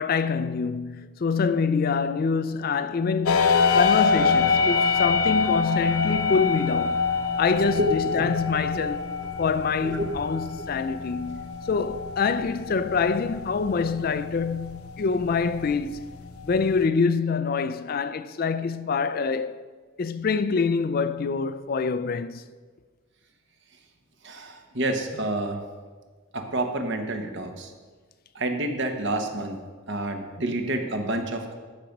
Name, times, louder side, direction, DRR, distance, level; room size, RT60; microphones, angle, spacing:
voice 1, 0.0-7.0 7.4-9.1 9.4-16.0 16.4-19.6 20.0-22.4, left 5 dB, 40° left, 0.3 m, -25 dB
sound 1, 3.3-16.9, left 5 dB, 80° left, 0.8 m, -26 dB
voice 2, 7.8-8.3 9.8-10.1 24.2-25.6 26.3-27.7 28.3-29.6 29.9-31.5, right 1 dB, 55° right, 1.1 m, -28 dB
13.5 x 5.2 x 5.9 m
head